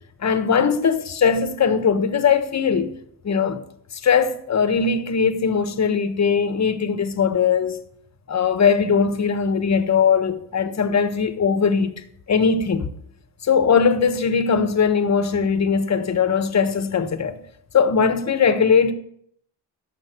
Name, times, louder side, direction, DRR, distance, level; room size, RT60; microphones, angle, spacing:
voice 1, 0.2-3.0 3.2-3.6 4.0-7.8 8.3-11.9 12.3-12.9 13.4-17.4 17.7-18.9, left 6 dB, 40° left, 1.3 m, -20 dB
12.0 x 7.2 x 7.9 m
cardioid pair, 90°, 41 cm